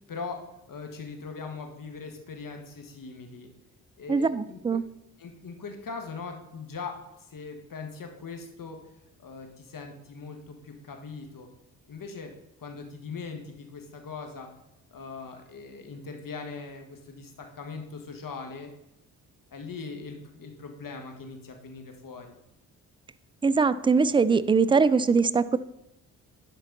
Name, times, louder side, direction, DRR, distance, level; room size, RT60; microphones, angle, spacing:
voice 1, 0.1-3.5 4.0-4.8 5.2-11.5 11.9-12.3 12.6-14.5 14.9-18.7 19.5-22.3, left 4 dB, 50° left, 4 dB, 1.6 m, -40 dB
voice 2, 4.1-4.8 23.4-25.6, right 5 dB, 15° right, 15 dB, 0.3 m, -22 dB
11.0 x 4.5 x 4.0 m, 0.86 s
hypercardioid pair, 45°, 43 cm